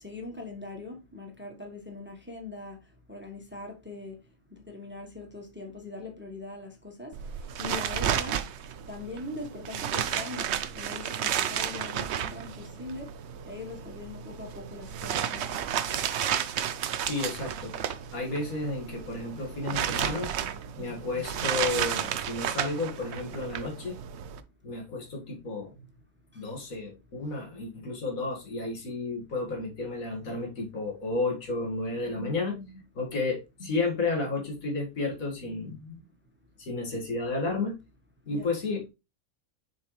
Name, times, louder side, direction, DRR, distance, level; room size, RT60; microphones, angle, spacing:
voice 1, 0.0-2.8 3.1-4.2 4.7-7.1 7.6-8.4 8.9-10.5 10.7-13.1 13.5-15.5 38.3-38.5, left 3 dB, 10° right, 1.1 m, -41 dB
sound 1, 7.1-24.4, right 9 dB, 60° right, 0.8 m, -32 dB
voice 2, 17.0-17.7 18.1-24.0 24.6-25.7 26.3-36.0 36.6-37.7 38.3-38.9, left 3 dB, 85° left, 2.3 m, -32 dB
7.0 x 4.4 x 3.2 m
omnidirectional pair, 1.4 m